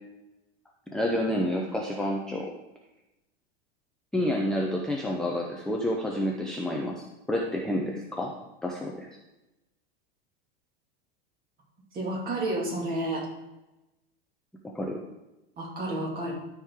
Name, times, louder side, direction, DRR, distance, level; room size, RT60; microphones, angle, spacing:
voice 1, 0.9-2.5 4.1-8.3 8.6-9.1 14.6-15.0, left 1 dB, ahead, -1 dB, 0.6 m, -29 dB
voice 2, 11.9-13.3 15.6-16.3, right 1 dB, 30° right, -2 dB, 2.4 m, -30 dB
12.5 x 4.8 x 3.6 m, 0.99 s
supercardioid pair, 135°, 31 cm